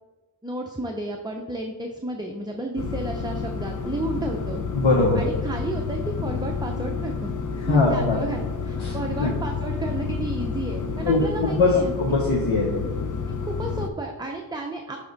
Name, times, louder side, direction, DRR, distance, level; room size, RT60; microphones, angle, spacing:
voice 1, 0.4-4.6 5.2-11.9 13.4-15.0, right 2 dB, 10° right, 2 dB, 0.5 m, -32 dB
sound 1, 2.8-13.9, left 5 dB, 45° left, 0.6 m, -30 dB
voice 2, 4.7-5.2 7.5-8.2 8.8-9.3 11.0-12.9, left 3 dB, 85° left, -1 dB, 1.0 m, -22 dB
10.0 x 3.5 x 4.0 m, 1.2 s
wide cardioid pair, 70°, 46 cm